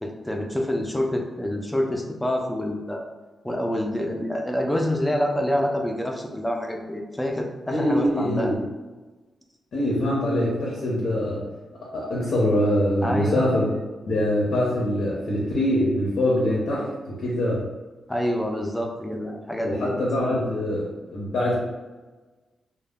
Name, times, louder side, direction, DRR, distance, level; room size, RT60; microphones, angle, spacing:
voice 1, 0.0-3.0 3.4-8.5 13.0-13.5 18.1-20.0, left 1 dB, 10° left, 1 dB, 0.3 m, -27 dB
voice 2, 7.7-8.6 9.7-11.4 11.9-13.7 14.1-17.6 19.6-21.5, left 1 dB, 70° left, -4 dB, 0.6 m, -24 dB
2.1 x 2.0 x 3.4 m, 1.2 s
wide cardioid pair, 120°, 0 cm